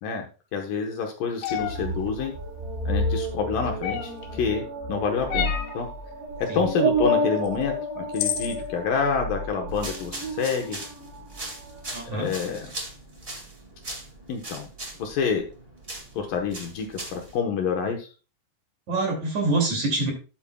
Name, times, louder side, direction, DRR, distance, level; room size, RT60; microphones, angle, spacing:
voice 1, 0.0-2.3 2.9-5.9 6.5-10.8 12.1-12.7 14.3-14.7 15.0-15.5 16.1-18.1, left 6 dB, 65° left, 3 dB, 2.5 m, -28 dB
sound 1, 1.4-1.8 3.8-4.3 5.3-5.8 7.5-7.6 8.1-8.6, left 10 dB, 85° left, 3.3 m, -28 dB
sound 2, 1.5-11.4 11.7-12.4, equal, 70° right, 4.6 m, -30 dB
sound 3, 9.7-17.4, right 2 dB, 30° right, 1.1 m, -40 dB
voice 2, 11.9-12.3 18.9-20.1, right 2 dB, 50° right, 1 dB, 3.6 m, -25 dB
12.5 x 9.0 x 2.3 m, 0.34 s
omnidirectional pair, 4.6 m